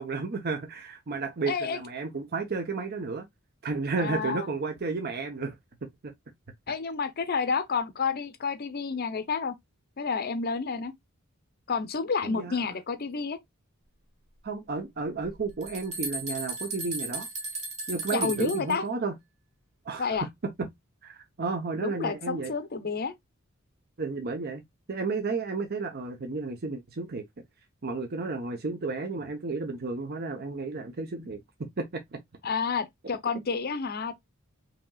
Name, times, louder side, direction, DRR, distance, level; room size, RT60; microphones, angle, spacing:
voice 1, 0.0-3.3 3.6-5.6 12.2-12.6 14.4-17.3 17.9-19.1 19.8-20.2 21.0-22.5 24.0-24.6 24.9-27.2 27.8-32.2, right 4 dB, 50° right, 0.7 m, -32 dB
voice 2, 1.5-1.8 4.0-4.5 6.7-9.5 10.0-10.9 11.7-13.4 18.1-18.8 20.0-20.3 21.8-23.1 32.4-34.1, left 5 dB, 45° left, 0.6 m, -30 dB
sound 1, 15.2-18.7, right 3 dB, 30° right, 1.7 m, -35 dB
4.9 x 2.9 x 2.3 m
head